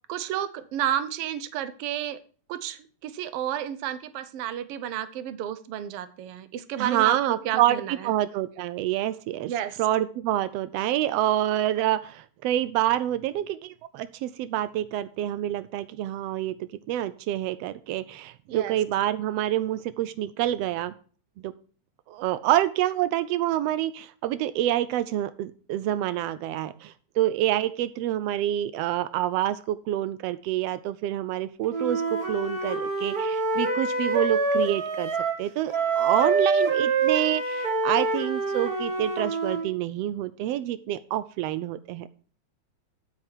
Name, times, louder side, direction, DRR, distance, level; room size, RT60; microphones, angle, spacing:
voice 1, 0.1-2.2 2.5-8.1 9.5-9.8 18.5-18.8, right 11 dB, 70° right, 14 dB, 1.4 m, -31 dB
voice 2, 6.8-9.5 9.8-16.5 16.9-20.9 21.4-21.5 22.1-35.1 35.4-42.1, right 13 dB, 90° right, 14 dB, 1.4 m, -27 dB
Wind instrument woodwind instrument, 31.7-35.4 35.7-39.7, right 4 dB, 35° right, 1.9 m, -26 dB
8.9 x 8.8 x 4.4 m, 0.41 s
omnidirectional pair, 3.5 m